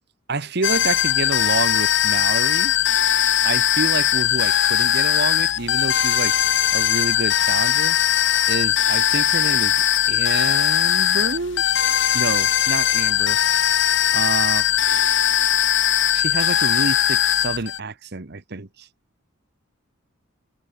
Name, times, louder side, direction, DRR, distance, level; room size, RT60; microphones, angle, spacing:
voice 1, 0.3-2.7 3.4-6.3 6.7-8.0 8.5-11.6 12.1-13.4 14.1-15.0 16.1-18.9, right 3 dB, 55° right, 1.3 m, -28 dB
sound 1, 0.6-17.8, left 10 dB, 60° left, 1.3 m, -19 dB
head